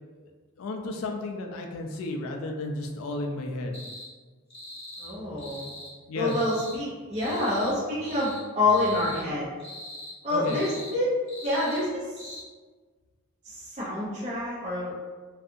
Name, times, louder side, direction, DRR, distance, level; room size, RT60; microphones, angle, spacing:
voice 1, 0.6-3.8 6.1-6.4 10.3-10.6, left 2 dB, 75° left, 3 dB, 0.3 m, -33 dB
sound 1, 3.7-4.1 4.5-5.1 5.4-5.9 6.2-6.8 7.1-7.7 8.0-8.4 8.7-9.2 9.6-10.1 10.4-10.9 11.3-11.8 12.2-12.4, left 1 dB, 30° left, 0.8 m, -42 dB
voice 2, 5.0-5.7 6.1-9.6 10.2-11.1 11.4-12.4 13.4-15.0, left 2 dB, 30° right, -9 dB, 0.6 m, -27 dB
2.6 x 2.3 x 2.5 m, 1.4 s
head